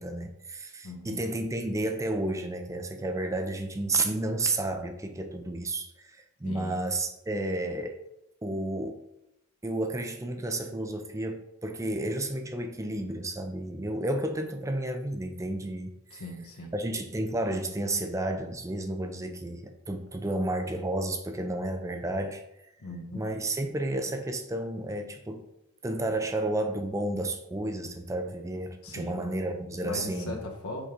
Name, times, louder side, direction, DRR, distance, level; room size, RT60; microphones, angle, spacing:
voice 1, 0.0-8.0 8.4-9.0 9.6-16.2 16.7-22.4 23.1-25.5 25.8-30.4, right 1 dB, 15° right, 6 dB, 0.4 m, -31 dB
voice 2, 0.8-1.2 6.4-6.8 16.1-16.7 22.8-23.3 28.8-29.3 29.8-30.9, left 1 dB, 85° left, 1 dB, 1.3 m, -39 dB
5.2 x 3.8 x 5.0 m, 0.84 s
head